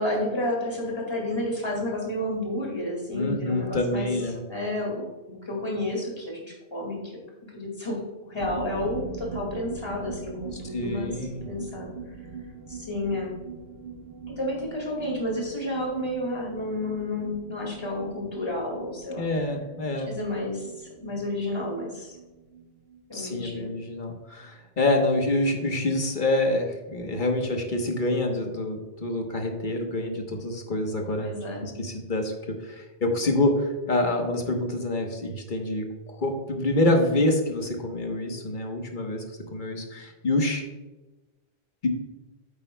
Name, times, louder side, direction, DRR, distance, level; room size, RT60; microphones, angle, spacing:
voice 1, 0.0-4.1 4.5-11.2 11.4-11.9 12.7-13.4 14.3-19.2 20.1-22.2 23.1-23.7 31.2-31.7, left 1 dB, 25° left, -1 dB, 2.1 m, -31 dB
voice 2, 3.1-4.4 10.7-11.4 19.2-20.1 23.1-31.3 31.6-32.3 32.6-39.2 39.5-40.6 41.8-41.9, left 2 dB, 55° left, 3 dB, 1.3 m, -26 dB
sound 1, 8.4-23.8 24.0-24.1 24.4-24.5, right 5 dB, 70° right, 1.0 m, -42 dB
8.7 x 8.5 x 2.2 m, 1.1 s
omnidirectional pair, 1.0 m